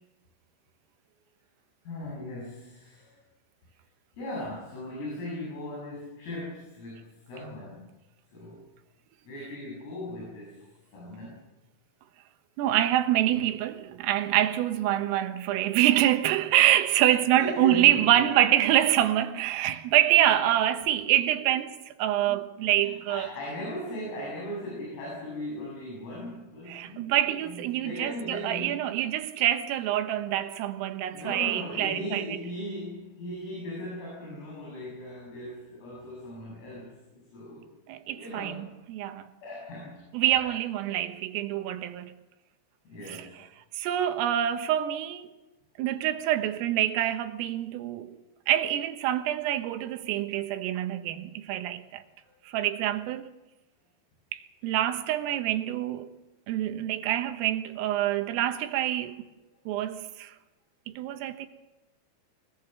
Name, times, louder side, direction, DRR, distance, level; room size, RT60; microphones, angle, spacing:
voice 1, 1.9-3.2 4.2-7.9 8.3-8.6 9.2-11.4 17.3-18.4 19.3-19.4 20.2-20.3 21.4-21.5 22.3-28.8 31.1-37.7 38.1-38.7 39.4-40.1 40.4-40.5 41.5-41.7 42.9-43.5 52.2-52.3, left 1 dB, 85° left, 10.0 m, -38 dB
voice 2, 12.6-23.3 26.7-32.3 37.9-39.3 40.1-42.2 43.1-43.3 43.7-45.3 45.8-48.2 48.5-52.0 52.5-53.3 54.3-56.1 56.5-59.2 59.7-60.3 60.9-61.5, right 12 dB, 85° right, 3.9 m, -26 dB
24.0 x 19.0 x 6.9 m
omnidirectional pair, 5.8 m